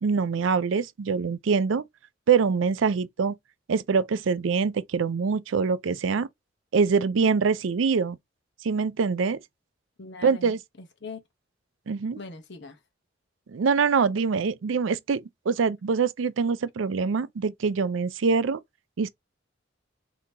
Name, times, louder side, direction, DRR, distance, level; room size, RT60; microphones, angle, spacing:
voice 1, 0.0-1.8 2.3-3.4 3.7-6.3 6.7-8.2 8.6-9.4 10.2-10.6 11.9-12.2 13.5-18.6 19.0-19.1, right 5 dB, 75° right, 0.4 m, -24 dB
voice 2, 10.0-11.2 12.2-12.8, left 3 dB, 60° left, 1.0 m, -41 dB
3.7 x 2.9 x 2.7 m
head